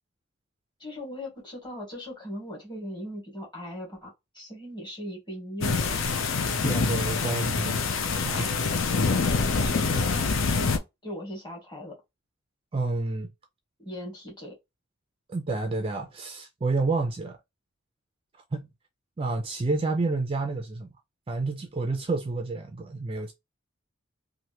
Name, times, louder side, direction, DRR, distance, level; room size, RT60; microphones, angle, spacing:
voice 1, 0.8-6.2 8.3-8.6 9.2-12.0 13.8-14.5, equal, 20° left, 1.7 m, -39 dB
sound 1, 5.6-10.8, left 4 dB, 65° left, 0.6 m, -25 dB
voice 2, 6.6-7.8 8.2-8.5 12.7-13.3 15.3-17.4 18.5-18.7 19.2-20.9 21.3-23.3, right 3 dB, 25° right, 0.4 m, -29 dB
3.1 x 2.5 x 2.8 m
head